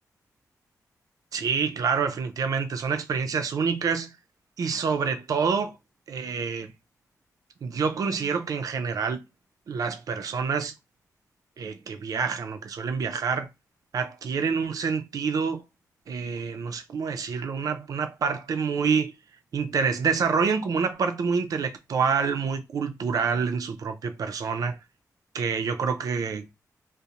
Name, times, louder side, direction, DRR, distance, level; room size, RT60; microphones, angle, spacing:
voice 1, 1.3-4.1 4.6-5.8 6.1-6.7 7.6-9.2 9.7-10.7 11.6-13.5 13.9-15.6 16.1-19.1 19.5-24.8 25.3-26.5, right 5 dB, 65° right, 0.4 m, -27 dB
2.5 x 2.0 x 2.8 m
cardioid pair, 100°, 7 cm